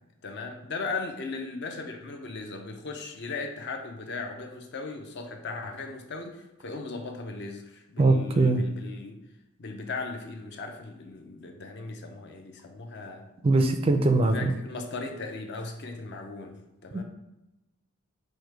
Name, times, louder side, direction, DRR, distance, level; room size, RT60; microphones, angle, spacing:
voice 1, 0.2-9.2 9.6-13.3 14.3-16.6 16.8-17.0, left 3 dB, 50° left, 4 dB, 0.6 m, -37 dB
voice 2, 8.0-8.6 13.4-14.5, right 2 dB, 25° right, 6 dB, 0.3 m, -21 dB
4.8 x 2.1 x 4.6 m, 0.96 s
head